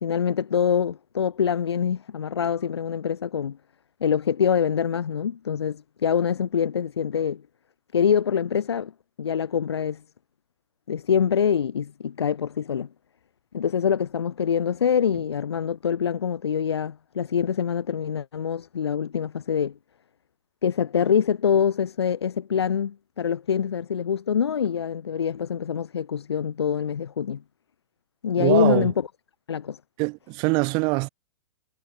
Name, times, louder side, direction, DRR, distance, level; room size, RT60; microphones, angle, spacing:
voice 1, 0.0-3.6 4.0-7.4 7.9-8.9 9.2-10.0 10.9-12.9 13.5-19.7 20.6-27.4 28.2-28.9 29.5-29.8, left 7 dB, 65° left, 1.9 m, -25 dB
voice 2, 28.4-28.9 30.0-31.1, right 30 dB, 30° right, 1.2 m, -23 dB
figure-of-eight pair, 110°, 15 cm